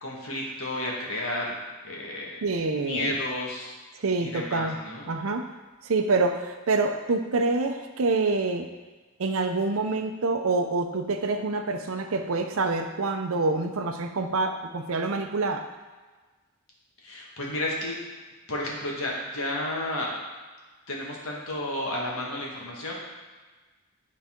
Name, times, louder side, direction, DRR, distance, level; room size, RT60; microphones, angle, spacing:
voice 1, 0.0-1.6 1.8-2.3 2.8-3.7 4.2-5.1 17.0-17.9 18.5-20.1 20.9-22.9, left 1 dB, 70° left, -3 dB, 1.6 m, -32 dB
voice 2, 2.4-3.1 4.0-4.8 5.1-5.5 5.8-8.7 9.2-15.7, right 3 dB, 75° right, 6 dB, 0.6 m, -26 dB
9.9 x 4.2 x 3.6 m, 1.3 s
head